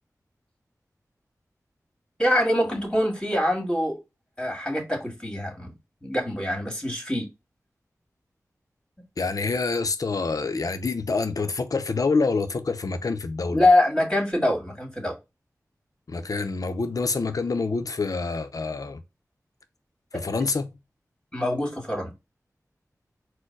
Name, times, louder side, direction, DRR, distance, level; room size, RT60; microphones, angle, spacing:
voice 1, 2.2-4.0 4.4-5.7 6.0-7.3 13.5-15.2 21.3-22.1, left 1 dB, 10° left, 2.2 m, -24 dB
voice 2, 9.2-13.7 16.1-19.0 20.1-20.7, left 4 dB, 70° left, 0.7 m, -26 dB
4.4 x 2.2 x 4.5 m
wide cardioid pair, 50°, 6 cm